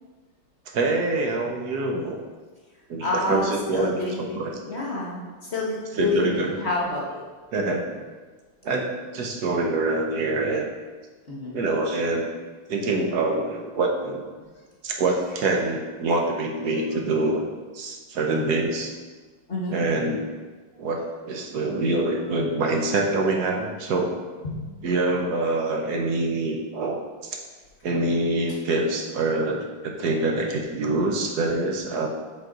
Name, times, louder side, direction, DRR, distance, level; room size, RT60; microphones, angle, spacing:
voice 1, 0.7-2.2 2.9-4.5 5.9-6.5 7.5-8.0 8.6-8.9 9.1-10.7 11.5-12.3 12.7-14.3 14.8-17.5 17.7-18.9 19.7-20.4 20.8-24.1 24.8-27.4 27.8-32.1, right 2 dB, 65° right, 1 dB, 1.1 m, -25 dB
voice 2, 3.0-5.2 5.5-7.2 11.3-11.6 18.3-18.6 19.5-19.8 24.4-24.6, left 3 dB, 40° left, -4 dB, 1.0 m, -28 dB
7.6 x 5.2 x 3.8 m, 1.3 s
omnidirectional pair, 2.4 m